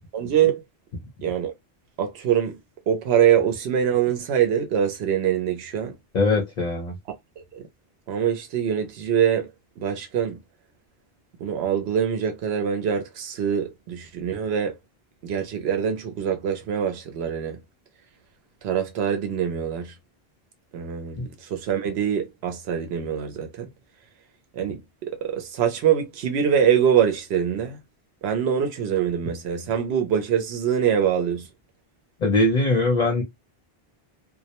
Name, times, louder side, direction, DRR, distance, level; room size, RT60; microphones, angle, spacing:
voice 1, 0.1-0.6 1.2-1.5 2.0-2.6 2.9-5.9 7.5-7.6 8.1-9.5 9.8-10.4 11.4-14.8 15.2-17.6 18.6-19.9 20.7-23.7 24.5-24.8 25.1-27.8 28.2-31.5, right 8 dB, 90° right, 0.8 m, -24 dB
voice 2, 6.1-6.9 21.2-21.3 32.2-33.2, left 2 dB, 50° left, 0.7 m, -21 dB
2.2 x 2.1 x 2.8 m
omnidirectional pair, 1.0 m